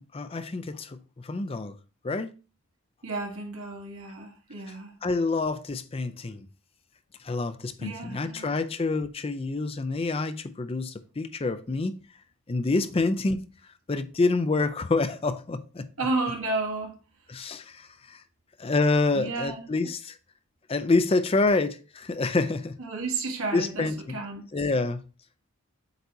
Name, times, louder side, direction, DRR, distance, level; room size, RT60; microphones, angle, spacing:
voice 1, 0.0-1.8 2.0-2.3 5.0-6.5 7.2-11.9 12.5-13.4 13.9-15.9 17.3-18.2 18.6-20.2 20.7-22.8 23.5-24.2 24.5-25.0, left 3 dB, 25° left, 0.4 m, -27 dB
voice 2, 3.0-4.9 6.2-6.4 7.8-8.5 16.0-17.0 19.1-19.9 22.8-24.4, right 3 dB, 70° right, 1.4 m, -32 dB
7.9 x 2.8 x 4.6 m
head